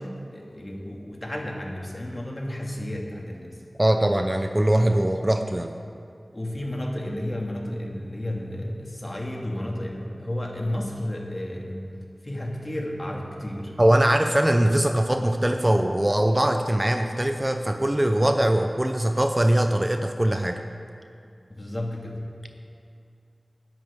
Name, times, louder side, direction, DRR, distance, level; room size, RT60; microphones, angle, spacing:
voice 1, 0.0-3.6 6.3-11.9 12.2-13.7 21.5-22.3, left 1 dB, 35° left, -1 dB, 2.2 m, -32 dB
voice 2, 3.8-5.7 13.8-20.6, right 1 dB, 25° right, 6 dB, 0.7 m, -21 dB
20.0 x 10.5 x 3.7 m, 2.5 s
wide cardioid pair, 50°, 0 cm